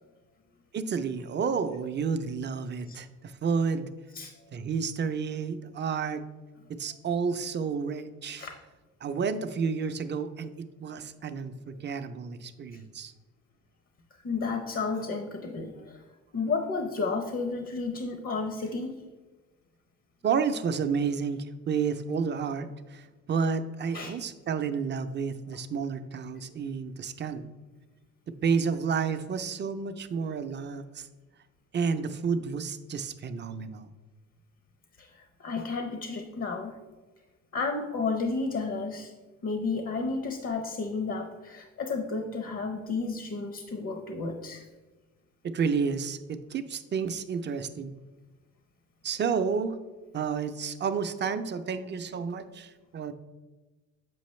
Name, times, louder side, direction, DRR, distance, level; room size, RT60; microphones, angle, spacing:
voice 1, 0.7-3.9 4.5-6.2 6.7-8.4 9.0-13.1 20.2-27.4 28.4-31.1 31.7-33.9 45.5-47.9 49.0-49.8 50.1-53.1, right 5 dB, 35° right, 9 dB, 0.5 m, -30 dB
voice 2, 14.2-16.0 16.3-19.0 23.9-24.1 35.0-36.8 37.5-39.1 39.4-44.6, left 4 dB, 50° left, 5 dB, 0.7 m, -32 dB
7.7 x 4.9 x 3.1 m, 1.2 s
cardioid pair, 90°, 30 cm